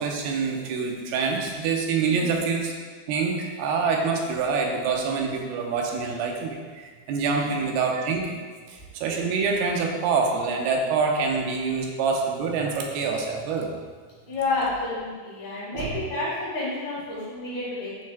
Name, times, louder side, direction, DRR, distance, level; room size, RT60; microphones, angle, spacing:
voice 1, 0.0-2.7 3.1-8.3 8.7-13.7 15.7-15.9, right 5 dB, 85° right, 1 dB, 2.8 m, -26 dB
voice 2, 2.1-2.5 7.3-7.6 14.3-18.0, left 2 dB, 75° left, -9 dB, 3.7 m, -30 dB
10.0 x 6.6 x 2.2 m, 1.5 s
omnidirectional pair, 4.4 m